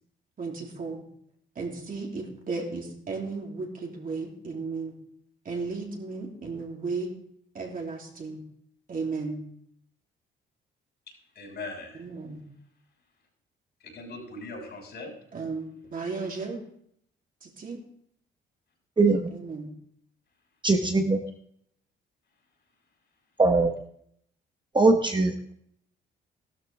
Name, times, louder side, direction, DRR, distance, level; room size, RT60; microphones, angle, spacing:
voice 1, 0.4-1.1 1.5-4.9 5.4-7.1 7.5-8.4 8.9-9.4 12.0-12.4 15.3-16.6 17.4-17.8 19.3-19.7, right 4 dB, 45° right, 0 dB, 3.1 m, -34 dB
voice 2, 11.1-12.0 13.8-15.1, left 2 dB, 60° left, 0 dB, 6.3 m, -40 dB
voice 3, 19.0-19.3 20.6-21.2 23.4-23.7 24.7-25.5, right 3 dB, 25° right, 4 dB, 1.1 m, -21 dB
14.0 x 12.5 x 3.5 m, 0.68 s
cardioid pair, 90°, 20 cm